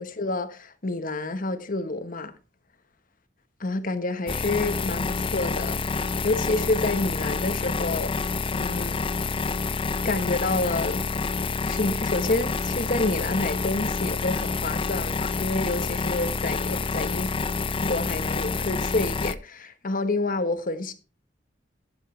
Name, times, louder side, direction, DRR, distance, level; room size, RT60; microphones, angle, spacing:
voice 1, 0.0-2.3 3.6-9.0 10.0-11.2 11.6-17.3 17.8-20.9, left 2 dB, 50° left, 1.2 m, -28 dB
sound 1, 4.3-19.3, left 4 dB, 30° left, 0.5 m, -28 dB
11.0 x 10.5 x 3.3 m
head